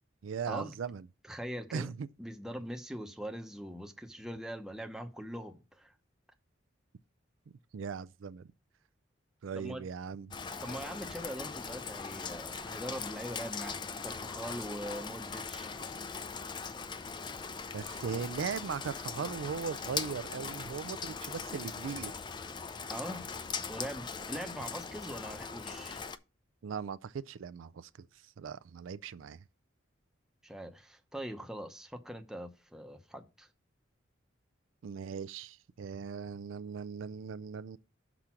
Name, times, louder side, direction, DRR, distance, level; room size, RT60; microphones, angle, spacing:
voice 1, 0.2-1.1 1.7-2.1 7.7-8.5 9.4-10.3 17.7-22.1 26.6-28.1 28.4-29.4 34.8-37.8, right 6 dB, 80° right, 0.4 m, -39 dB
voice 2, 1.3-1.9 2.2-5.9 9.5-9.9 10.6-15.9 22.9-23.3 23.7-26.0 30.4-33.5, equal, 5° right, 0.7 m, -42 dB
Rain, 10.3-26.2, left 5 dB, 25° left, 0.4 m, -40 dB
6.0 x 5.0 x 5.7 m
head